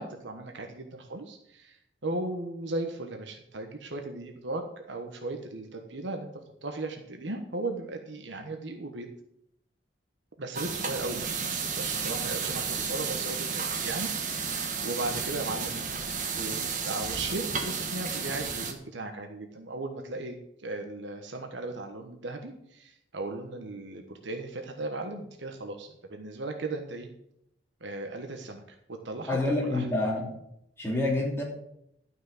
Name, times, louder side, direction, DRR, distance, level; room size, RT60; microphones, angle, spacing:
voice 1, 0.0-9.1 10.4-16.0 16.3-27.1 27.8-28.6 28.9-29.9, right 2 dB, 75° right, 4 dB, 1.2 m, -37 dB
sound 1, 10.5-18.7, right 5 dB, 40° right, 1.5 m, -32 dB
voice 2, 29.3-30.3 30.8-31.4, left 2 dB, 15° left, -3 dB, 3.1 m, -27 dB
12.0 x 6.2 x 7.7 m, 0.77 s
head